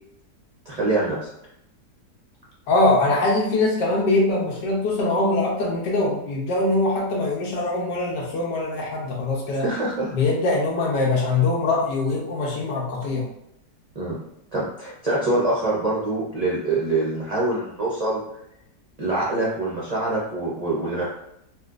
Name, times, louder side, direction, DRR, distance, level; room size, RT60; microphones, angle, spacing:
voice 1, 0.7-1.2 9.6-10.1 13.9-14.2 14.5-18.2 19.0-21.0, right 2 dB, 60° right, -7 dB, 0.4 m, -24 dB
voice 2, 2.7-9.7 10.1-13.2, left 2 dB, 85° left, -2 dB, 1.5 m, -22 dB
4.2 x 2.2 x 2.4 m, 0.78 s
omnidirectional pair, 1.8 m